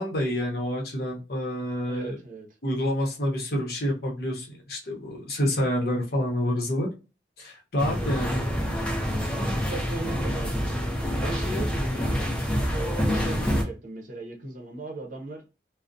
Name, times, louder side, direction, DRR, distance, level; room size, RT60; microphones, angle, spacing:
voice 1, 0.0-2.2 2.6-6.9 7.4-8.4, equal, 60° left, 0.8 m, -28 dB
voice 2, 1.9-2.5 7.9-8.1 9.3-10.9 11.2-12.1 12.7-15.4, right 1 dB, 45° right, 0.7 m, -37 dB
sound 1, 7.8-13.6, equal, 5° left, 0.6 m, -27 dB
2.4 x 2.0 x 2.5 m
head